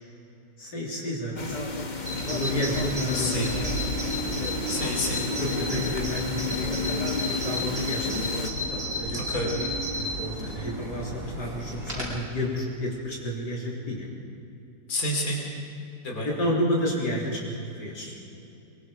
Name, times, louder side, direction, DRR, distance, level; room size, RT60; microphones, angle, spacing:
voice 1, 0.6-1.6 2.3-3.8 5.1-8.2 8.6-9.2 9.5-14.1 16.2-18.2, equal, 85° left, -4 dB, 4.2 m, -31 dB
sound 1, 1.4-8.5, left 4 dB, 30° left, 1.3 m, -32 dB
Bird vocalization bird call bird song, 2.0-12.2, equal, 65° right, 5.4 m, -32 dB
voice 2, 3.1-3.5 4.7-5.2 9.1-9.6 14.9-15.5 16.0-16.3, left 1 dB, 55° left, -1 dB, 3.6 m, -29 dB
23.0 x 22.5 x 5.1 m, 2.7 s
omnidirectional pair, 1.8 m